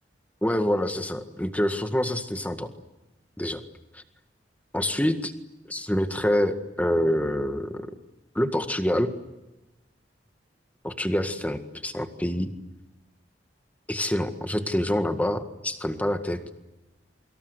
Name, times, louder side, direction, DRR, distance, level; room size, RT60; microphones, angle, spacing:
voice 1, 0.4-2.7 3.4-3.6 3.9-4.0 4.7-5.3 5.7-7.9 8.4-9.1 10.8-12.5 13.9-16.4, left 1 dB, 10° left, 8 dB, 1.8 m, -26 dB
28.5 x 25.0 x 8.1 m, 0.99 s
head